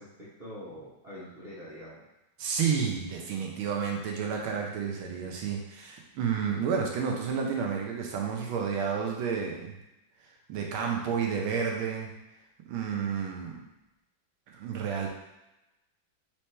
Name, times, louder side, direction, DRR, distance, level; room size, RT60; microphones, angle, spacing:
voice 1, 0.0-2.0, equal, 25° right, -9 dB, 1.0 m, -44 dB
voice 2, 2.4-9.7 10.5-12.1 12.7-13.6 14.5-15.1, right 6 dB, 90° right, 1 dB, 1.6 m, -31 dB
4.3 x 3.1 x 3.3 m, 0.96 s
omnidirectional pair, 2.2 m